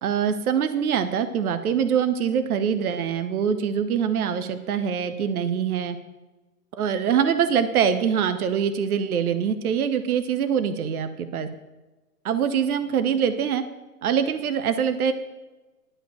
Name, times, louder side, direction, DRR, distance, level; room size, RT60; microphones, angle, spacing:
voice 1, 0.0-6.0 6.8-11.5 12.2-13.6 14.0-15.1, right 7 dB, 60° right, 11 dB, 0.9 m, -24 dB
11.0 x 5.1 x 6.9 m, 1.1 s
hypercardioid pair, 130°, 48 cm